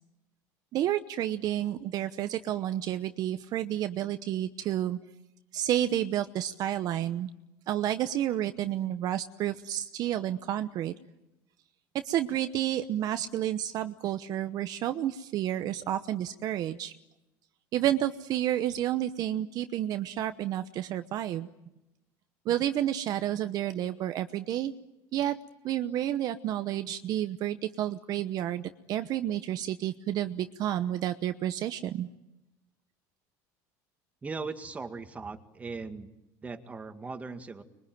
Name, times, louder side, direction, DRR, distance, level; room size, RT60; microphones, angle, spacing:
voice 1, 0.7-5.0 5.5-7.3 7.7-10.9 12.0-16.9 17.7-21.5 22.4-24.7 25.1-25.3 25.6-32.1, right 12 dB, 50° right, 10 dB, 0.9 m, -30 dB
voice 2, 34.2-36.1 36.4-37.6, right 4 dB, 15° right, 7 dB, 2.0 m, -39 dB
25.5 x 22.5 x 9.4 m, 0.94 s
cardioid pair, 130°, 8 cm